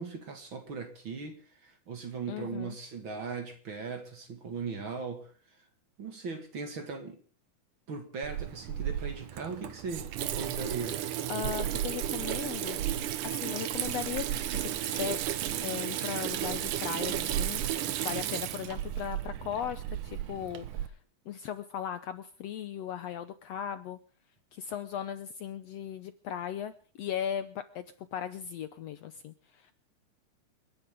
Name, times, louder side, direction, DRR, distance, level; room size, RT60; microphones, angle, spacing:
voice 1, 0.0-5.3 6.0-7.2 7.9-11.0, right 5 dB, 45° right, 2.3 m, -39 dB
voice 2, 2.3-2.8 10.9-12.8 13.2-15.2 15.6-21.0 21.3-24.0 24.5-29.7, left 9 dB, 70° left, 1.7 m, -38 dB
Water tap faucet / Sink (filling or washing), 8.2-20.9, right 11 dB, 85° right, 2.6 m, -33 dB
29.0 x 11.0 x 3.6 m
omnidirectional pair, 3.7 m